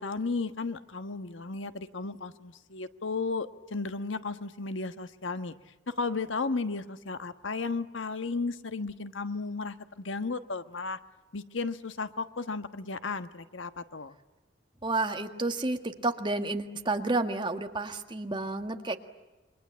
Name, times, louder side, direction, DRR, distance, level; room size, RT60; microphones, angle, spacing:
voice 1, 0.0-5.5 5.9-11.0 11.3-14.1, left 3 dB, 90° left, 10 dB, 1.3 m, -34 dB
voice 2, 14.8-19.0, right 2 dB, 25° right, 6 dB, 1.8 m, -30 dB
28.5 x 24.0 x 8.7 m, 1.1 s
head